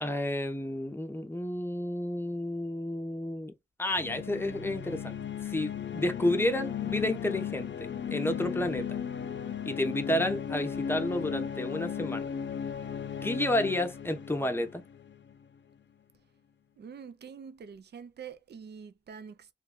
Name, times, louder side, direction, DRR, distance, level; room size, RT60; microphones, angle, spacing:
voice 1, 0.0-3.5 3.8-5.1 5.4-9.0 9.6-12.3 13.2-14.8, left 1 dB, 10° left, 0.6 m, -31 dB
sound 1, 3.9-15.5, left 8 dB, 75° left, 0.4 m, -36 dB
voice 2, 16.8-19.5, right 6 dB, 60° right, 0.4 m, -46 dB
3.0 x 2.2 x 3.6 m
wide cardioid pair, 85°, 19 cm